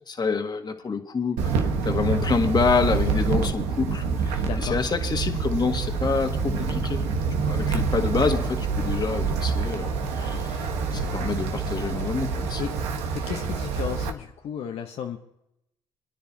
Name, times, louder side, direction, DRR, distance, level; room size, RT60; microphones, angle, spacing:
voice 1, 0.1-12.9, left 5 dB, 40° left, 6 dB, 1.7 m, -27 dB
Wind, 1.4-14.1, right 4 dB, 85° right, 1.2 m, -26 dB
voice 2, 4.5-4.8 12.6-12.7 13.3-15.2, left 9 dB, 70° left, 3 dB, 0.9 m, -33 dB
27.5 x 10.0 x 2.8 m, 0.81 s
supercardioid pair, 55°, 11 cm